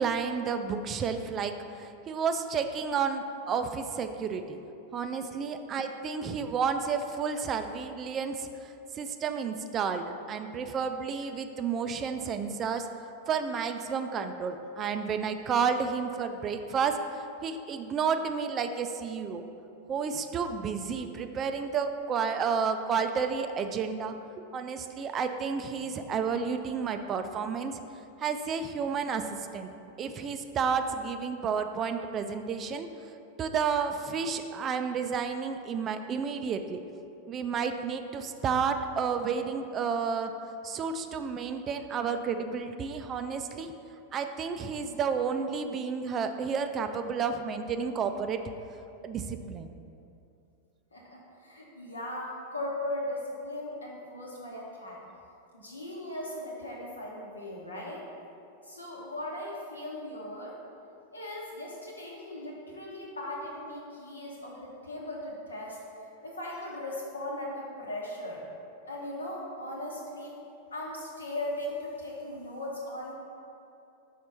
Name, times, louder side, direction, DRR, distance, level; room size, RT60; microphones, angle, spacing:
voice 1, 0.0-4.6 4.9-8.5 8.9-12.9 13.3-19.4 19.9-24.1 24.5-27.8 28.2-29.3 29.5-29.7 30.0-32.9 33.4-36.8 37.3-40.3 40.6-43.7 44.1-48.4 49.0-49.7, right 6 dB, 30° right, 8 dB, 0.3 m, -31 dB
voice 2, 50.9-55.0 55.5-58.1 58.6-60.6 61.1-65.8 66.2-68.4 68.8-70.4 70.7-73.1, left 1 dB, 80° left, -3 dB, 1.1 m, -38 dB
5.5 x 4.2 x 4.4 m, 2.7 s
figure-of-eight pair, 90°, 0 cm